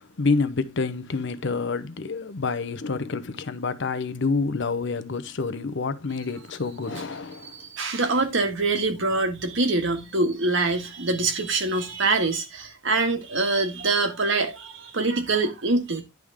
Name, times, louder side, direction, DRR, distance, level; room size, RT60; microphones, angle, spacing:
voice 1, 0.0-7.6, left 4 dB, 65° left, 0.8 m, -28 dB
voice 2, 7.6-16.0, right 3 dB, 65° right, 1.7 m, -24 dB
10.5 x 3.6 x 4.8 m
head